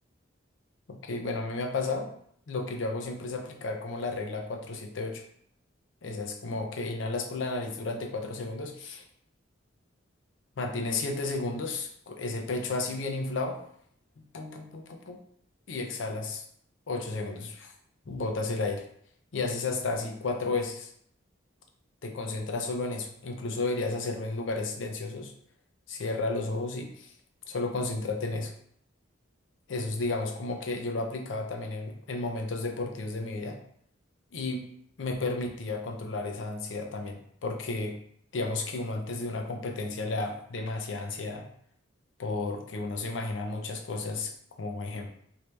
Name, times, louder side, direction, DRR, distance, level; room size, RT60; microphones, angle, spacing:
voice 1, 1.0-2.1 2.5-5.2 6.0-9.0 10.6-13.6 14.3-15.2 15.7-16.4 16.9-17.7 18.1-18.9 19.3-20.9 22.0-25.3 25.9-27.1 27.5-28.5 29.7-33.6 34.3-34.7 35.0-38.0 38.3-41.5 42.2-44.3 44.6-45.1, left 3 dB, 75° left, 3 dB, 0.5 m, -33 dB
3.3 x 2.8 x 3.1 m, 0.66 s
head